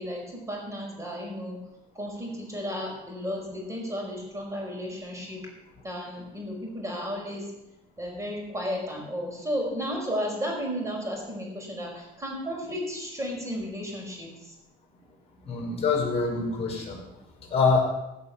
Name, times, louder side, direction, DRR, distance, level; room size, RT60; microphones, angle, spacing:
voice 1, 0.0-1.6 1.9-5.4 5.8-7.5 8.0-14.5, equal, 15° right, 0 dB, 5.1 m, -33 dB
voice 2, 15.5-17.0 17.5-17.8, left 4 dB, 35° left, -1 dB, 5.7 m, -25 dB
16.5 x 6.3 x 7.4 m, 0.92 s
cardioid pair, 110°, 17 cm